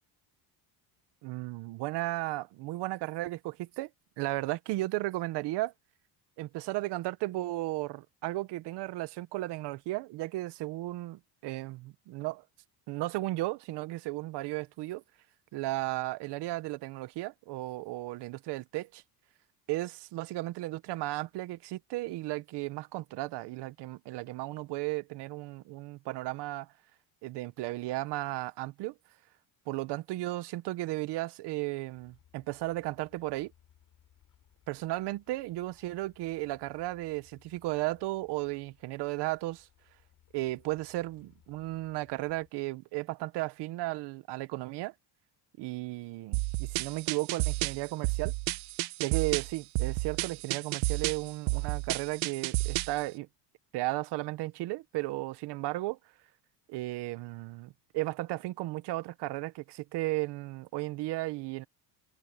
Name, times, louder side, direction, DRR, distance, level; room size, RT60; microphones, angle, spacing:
voice 1, 1.2-3.9 4.2-5.7 6.4-12.4 12.9-15.0 15.5-19.0 19.7-26.7 27.2-28.9 29.7-33.5 34.7-39.7 40.3-44.9 45.6-48.3 49.0-53.3 53.7-56.0 56.7-61.7, right 19 dB, 60° right, 1.0 m, -35 dB
sound 1, 32.0-42.5, left 11 dB, 40° left, 6.5 m, -65 dB
sound 2, 46.3-53.0, right 20 dB, 85° right, 1.0 m, -31 dB
open air
cardioid pair, 175°, 46 cm